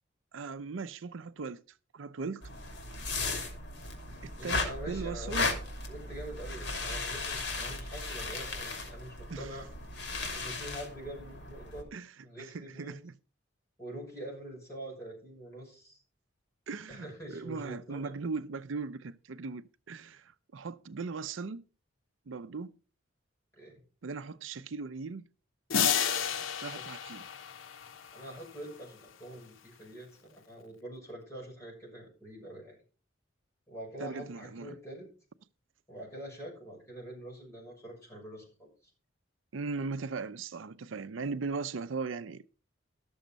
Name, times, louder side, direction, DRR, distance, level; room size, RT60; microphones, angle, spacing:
voice 1, 0.3-1.6 1.9-2.4 4.2-5.5 9.3-9.6 11.9-12.1 12.4-13.1 16.7-21.6 22.3-22.8 24.0-25.3 26.6-27.3 34.0-34.8 39.5-42.4, right 4 dB, 80° right, 0.6 m, -38 dB
sound 1, 2.4-11.8, left 3 dB, 60° left, 2.8 m, -36 dB
voice 2, 4.4-5.4 5.9-9.7 10.3-11.9 12.2-13.0 13.8-16.0 16.9-18.1 23.6-23.8 26.0-26.6 28.1-32.8 33.7-35.1 35.9-38.7, right 1 dB, 15° left, 6.5 m, -45 dB
sound 2, 25.7-28.2, left 8 dB, 90° left, 0.8 m, -31 dB
12.5 x 7.1 x 5.3 m
head